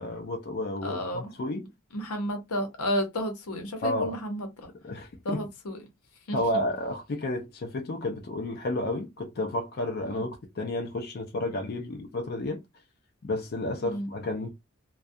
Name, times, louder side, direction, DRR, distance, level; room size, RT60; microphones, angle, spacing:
voice 1, 0.0-1.7 3.8-4.1 4.8-5.5 6.3-12.6 13.2-14.5, left 1 dB, 45° left, 0.4 m, -31 dB
voice 2, 0.8-1.3 1.9-4.7 5.2-5.8 6.3-6.4 10.1-10.2 13.8-14.1, equal, 85° left, 0.8 m, -32 dB
2.3 x 2.2 x 2.6 m
head